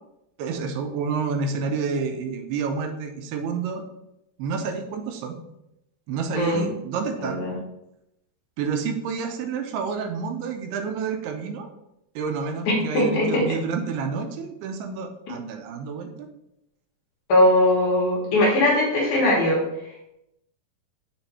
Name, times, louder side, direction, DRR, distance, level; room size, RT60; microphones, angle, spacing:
voice 1, 0.4-3.8 4.4-5.4 6.1-7.4 8.6-11.7 12.2-16.3, right 5 dB, 85° right, 6 dB, 2.6 m, -29 dB
voice 2, 6.4-6.7 7.3-7.6 12.9-13.4 17.3-19.6, left 1 dB, 60° left, -3 dB, 2.4 m, -20 dB
7.0 x 3.4 x 4.2 m, 0.86 s
omnidirectional pair, 4.6 m